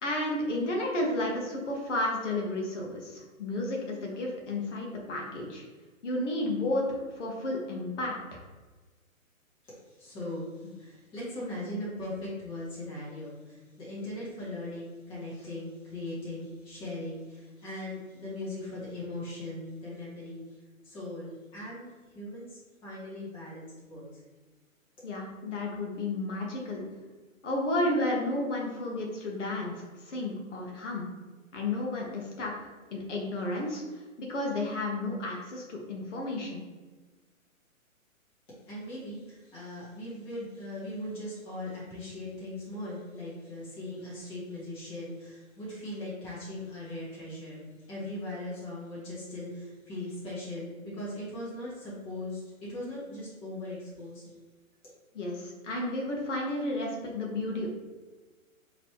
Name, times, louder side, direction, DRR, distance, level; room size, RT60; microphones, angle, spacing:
voice 1, 0.0-5.6 6.0-8.4 25.0-26.8 27.4-31.1 31.5-36.6 55.1-57.7, left 1 dB, 60° left, -1 dB, 1.1 m, -32 dB
voice 2, 9.6-24.2 38.6-54.3 54.8-54.9, left 1 dB, 10° left, -7 dB, 1.2 m, -39 dB
4.3 x 3.1 x 3.0 m, 1.3 s
hypercardioid pair, 155°, 42 cm